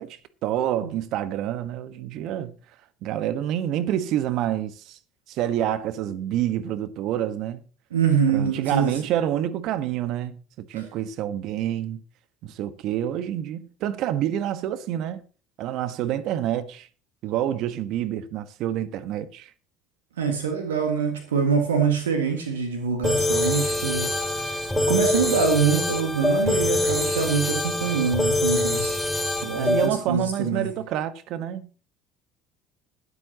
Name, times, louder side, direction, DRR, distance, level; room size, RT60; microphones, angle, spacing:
voice 1, 0.0-2.5 3.0-5.0 5.3-7.6 8.3-12.0 12.4-15.3 15.6-16.9 17.2-19.5 29.5-31.8, right 11 dB, 60° right, 1.2 m, -28 dB
voice 2, 7.9-9.0 10.7-10.8 20.2-29.0 29.4-30.7, right 6 dB, 85° right, 1.8 m, -25 dB
sound 1, 23.0-29.9, left 1 dB, 10° left, 4.0 m, -24 dB
21.0 x 8.2 x 2.9 m
hypercardioid pair, 65°, 0 cm